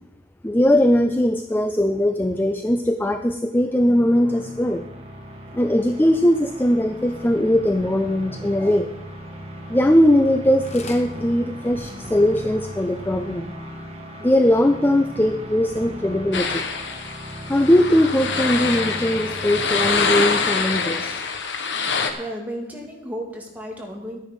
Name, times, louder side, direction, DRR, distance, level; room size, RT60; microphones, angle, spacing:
voice 1, 0.4-4.9 5.5-8.9 9.7-13.5 14.2-16.6 17.5-21.1, left 1 dB, 10° left, 7 dB, 0.4 m, -20 dB
Shuttle interference, 3.7-20.2, equal, 30° right, 1.7 m, -37 dB
sound 1, 10.2-10.4 10.6-11.1 11.7-11.8 12.1-12.2 12.3-12.4 13.1-13.2, left 4 dB, 35° left, 1.2 m, -39 dB
sound 2, 16.3-22.1, left 5 dB, 65° left, 1.2 m, -25 dB
voice 2, 21.8-24.2, equal, 10° right, -1 dB, 2.2 m, -34 dB
12.0 x 10.0 x 5.2 m, 0.95 s
head